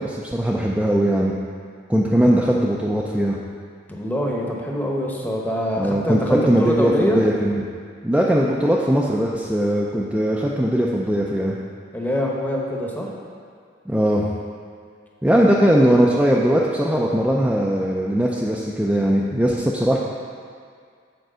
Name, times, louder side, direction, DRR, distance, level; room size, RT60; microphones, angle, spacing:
voice 1, 0.0-1.3 1.9-3.4 5.8-7.6 8.0-11.6 13.9-14.3 15.2-20.0, equal, 5° right, -4 dB, 0.4 m, -19 dB
voice 2, 3.9-7.2 11.9-13.1 15.3-15.5, equal, 10° left, -2 dB, 0.9 m, -24 dB
7.8 x 4.5 x 6.2 m, 2.1 s
head